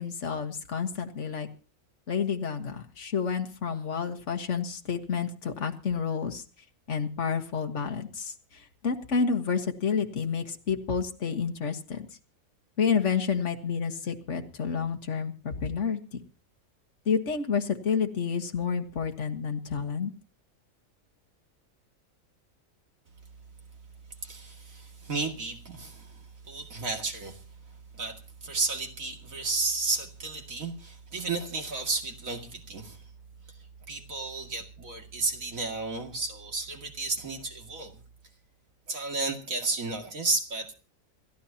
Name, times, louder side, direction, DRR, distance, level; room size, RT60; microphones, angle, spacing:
voice 1, 0.0-1.5 2.1-6.4 6.9-8.3 8.8-12.1 12.8-16.2 17.1-20.1, left 6 dB, 60° left, 1.8 m, -29 dB
voice 2, 24.2-27.4 27.9-33.0 33.9-38.0 38.9-40.7, right 3 dB, 90° right, 2.7 m, -33 dB
28.0 x 13.0 x 2.8 m
omnidirectional pair, 1.4 m